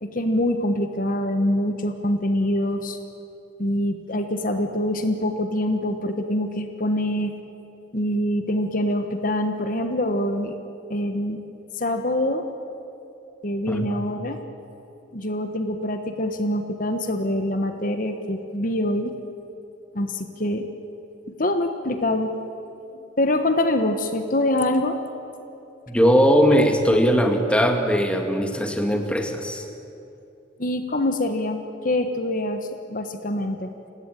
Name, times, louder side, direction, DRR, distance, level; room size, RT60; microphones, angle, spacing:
voice 1, 0.0-3.0 3.6-7.3 7.9-10.6 10.9-11.5 11.8-12.4 13.4-14.4 15.1-19.1 19.9-20.7 21.4-22.3 22.9-25.0 30.6-33.7, left 1 dB, 45° left, 7 dB, 1.4 m, -25 dB
voice 2, 13.7-14.0 25.9-29.6, equal, 5° left, 4 dB, 2.0 m, -20 dB
29.5 x 17.0 x 9.1 m, 2.9 s
head